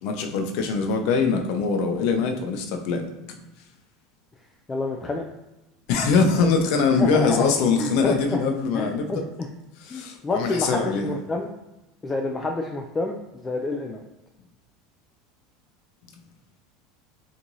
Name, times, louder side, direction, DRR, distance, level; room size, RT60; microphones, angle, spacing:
voice 1, 0.0-3.4 5.9-9.2 9.8-11.2, left 5 dB, 65° left, 5 dB, 0.6 m, -23 dB
voice 2, 4.7-5.3 7.0-7.4 7.8-8.4 8.7-9.5 9.9-11.5 12.0-14.0, left 2 dB, 20° left, 2 dB, 0.4 m, -28 dB
3.0 x 2.5 x 3.9 m, 0.96 s
supercardioid pair, 100°, 0 cm